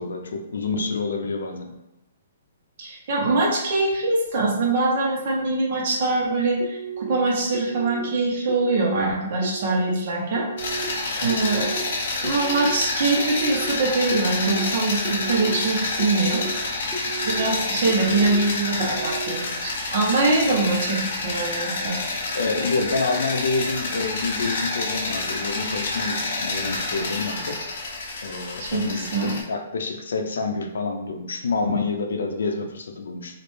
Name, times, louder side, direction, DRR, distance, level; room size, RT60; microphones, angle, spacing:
voice 1, 0.0-1.8 20.4-20.8 22.3-27.6 28.2-33.4, left 3 dB, 85° left, 5 dB, 0.5 m, -28 dB
voice 2, 2.8-10.9 11.2-11.7 12.2-16.4 17.2-22.0 28.6-29.4, right 3 dB, 45° right, -2 dB, 0.9 m, -23 dB
sound 1, 6.6-7.1 7.5-8.0 8.5-9.0 9.4-9.9 10.4-10.9 11.3-11.8 12.2-12.7 13.2-13.7 14.1-14.6 15.0-15.5 16.0-16.5 16.9-17.4 17.9-18.4 18.8-19.3, right 4 dB, 15° left, 0.6 m, -34 dB
sound 2, 10.6-29.4, left 3 dB, 55° left, 0.8 m, -28 dB
3.1 x 2.5 x 3.2 m, 0.92 s
hypercardioid pair, 165°, 0 cm